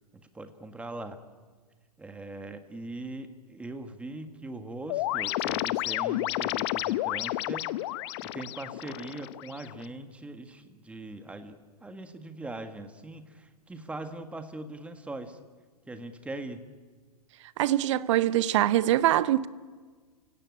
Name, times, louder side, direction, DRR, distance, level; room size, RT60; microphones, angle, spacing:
voice 1, 0.3-1.2 2.0-15.4 15.9-16.7, right 2 dB, 5° right, 1.7 m, -41 dB
sound 1, 4.9-9.9, left 16 dB, 40° left, 0.8 m, -31 dB
voice 2, 17.6-19.5, right 13 dB, 50° right, 0.9 m, -23 dB
29.5 x 17.5 x 8.8 m
figure-of-eight pair, 115°, 20 cm